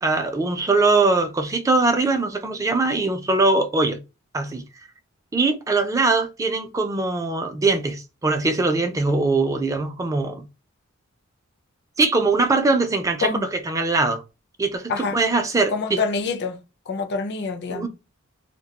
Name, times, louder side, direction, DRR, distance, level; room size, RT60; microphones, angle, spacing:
voice 1, 0.0-4.0 4.3-4.6 5.3-10.5 12.0-13.3 13.7-14.2 14.6-16.0 17.7-17.9, right 3 dB, 15° right, 0.3 m, -21 dB
voice 2, 14.9-15.2 15.7-16.6 16.9-17.9, left 4 dB, 55° left, 0.4 m, -26 dB
2.2 x 2.1 x 2.8 m
head